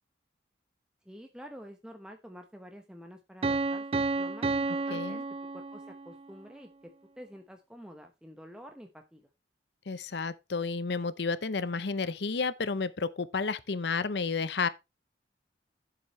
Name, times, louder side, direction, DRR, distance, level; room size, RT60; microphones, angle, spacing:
voice 1, 1.0-5.2 5.5-9.2, equal, 5° right, 0.9 m, -49 dB
Piano, 3.4-6.2, right 3 dB, 30° right, 0.5 m, -31 dB
voice 2, 4.9-5.2 9.9-14.7, left 4 dB, 65° left, 0.7 m, -31 dB
11.0 x 7.8 x 3.1 m
head